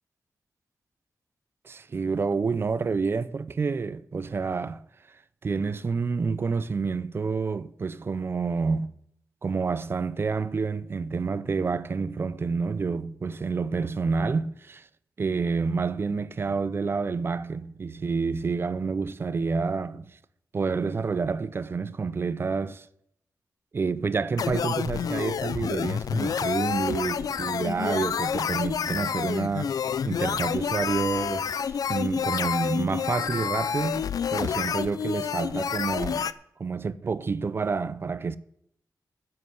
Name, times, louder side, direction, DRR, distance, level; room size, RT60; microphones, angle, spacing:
voice 1, 1.6-4.8 5.1-8.9 9.4-14.9 15.2-20.1 20.5-22.9 23.7-29.7 30.0-34.0 34.3-36.3 36.6-38.4, right 4 dB, 40° right, 0.6 m, -28 dB
sound 1, 24.4-36.3, left 7 dB, 75° left, 0.5 m, -29 dB
9.9 x 7.7 x 7.8 m
wide cardioid pair, 175°, 6 cm